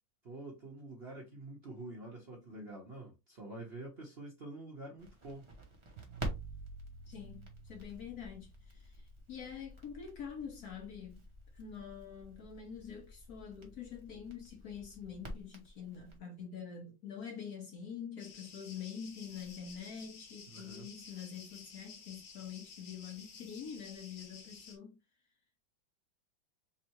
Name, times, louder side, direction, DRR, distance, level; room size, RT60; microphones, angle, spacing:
voice 1, 0.2-5.5 20.5-20.9, right 2 dB, 45° right, 0.9 m, -47 dB
Crackle, 5.0-16.2, right 1 dB, 30° right, 0.6 m, -48 dB
sound 1, 6.0-9.0, right 6 dB, 85° right, 1.4 m, -51 dB
voice 2, 7.1-11.3 11.5-25.0, left 7 dB, 60° left, 1.2 m, -46 dB
sound 2, 18.2-24.8, left 5 dB, 75° left, 1.6 m, -53 dB
3.6 x 3.3 x 2.9 m
omnidirectional pair, 2.1 m